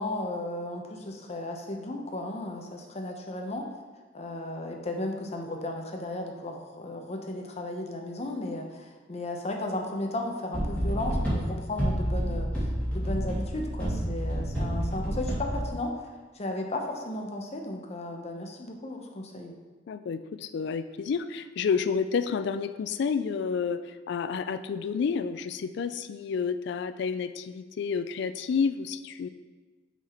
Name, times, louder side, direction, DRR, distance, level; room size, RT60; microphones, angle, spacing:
voice 1, 0.0-3.7 4.1-15.9 16.3-19.5, left 1 dB, 35° left, 2 dB, 0.7 m, -35 dB
sound 1, 10.5-15.6, equal, 5° left, 1.9 m, -29 dB
voice 2, 19.9-29.3, left 6 dB, 65° left, 11 dB, 0.3 m, -30 dB
6.0 x 4.0 x 4.3 m, 1.3 s
head